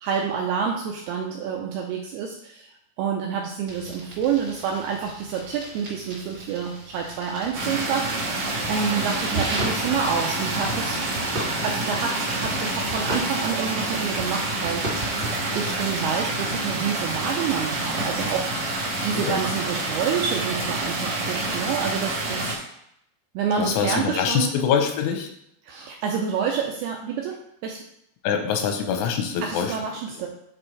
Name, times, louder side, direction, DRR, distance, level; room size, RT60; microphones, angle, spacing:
voice 1, 0.0-2.7 3.0-8.3 8.7-11.0 11.6-14.9 15.5-18.5 19.0-22.6 23.3-24.5 25.6-27.8 29.4-30.3, right 6 dB, 90° right, 0 dB, 2.3 m, -28 dB
sound 1, 3.7-18.3, right 2 dB, 50° right, 1.4 m, -37 dB
sound 2, 7.5-22.5, right 2 dB, 75° right, 1.3 m, -28 dB
voice 2, 23.6-25.3 28.2-29.7, left 7 dB, 90° left, 4 dB, 3.3 m, -24 dB
8.9 x 4.3 x 3.3 m, 0.74 s
omnidirectional pair, 5.3 m